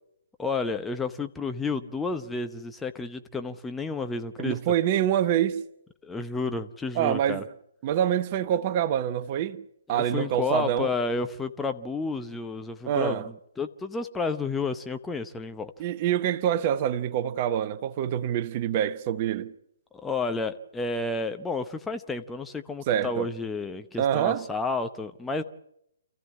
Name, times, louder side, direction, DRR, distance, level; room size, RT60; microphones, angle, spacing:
voice 1, 0.4-4.6 6.0-7.4 9.9-15.7 19.9-25.4, left 3 dB, 5° left, 0.8 m, -31 dB
voice 2, 4.4-5.6 7.0-7.4 7.8-9.6 9.9-10.9 12.9-13.3 15.8-19.5 22.9-23.3 24.0-24.4, right 10 dB, 35° right, 0.9 m, -26 dB
28.0 x 15.0 x 8.5 m
figure-of-eight pair, 130°, 0 cm